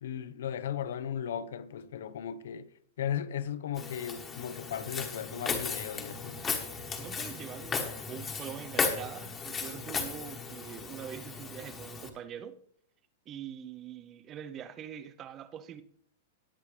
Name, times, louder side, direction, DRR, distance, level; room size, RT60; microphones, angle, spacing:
voice 1, 0.0-2.7 3.0-6.4, left 9 dB, 80° left, 0.8 m, -36 dB
Walk footsteps, 3.8-12.1, left 5 dB, 15° left, 1.2 m, -36 dB
voice 2, 7.0-12.6 13.3-15.8, right 9 dB, 20° right, 0.6 m, -44 dB
19.0 x 7.3 x 3.3 m
supercardioid pair, 170°, 0 cm